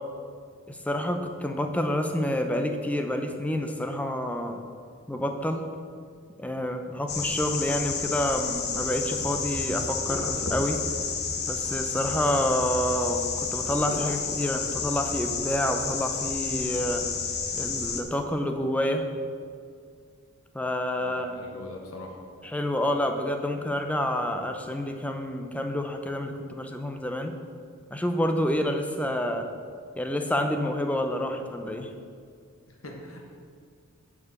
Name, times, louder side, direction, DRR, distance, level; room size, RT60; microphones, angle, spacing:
voice 1, 0.7-4.6 5.1-5.7 6.4-10.8 11.5-17.1 17.6-19.1 20.5-21.4 22.4-27.3 27.9-29.5 30.0-31.9, left 1 dB, 5° left, 5 dB, 0.6 m, -28 dB
sound 1, 7.1-18.0, left 5 dB, 50° left, 0.9 m, -30 dB
voice 2, 21.0-22.2 32.7-33.3, left 1 dB, 85° left, 1 dB, 1.4 m, -42 dB
9.8 x 4.9 x 6.5 m, 2.2 s
head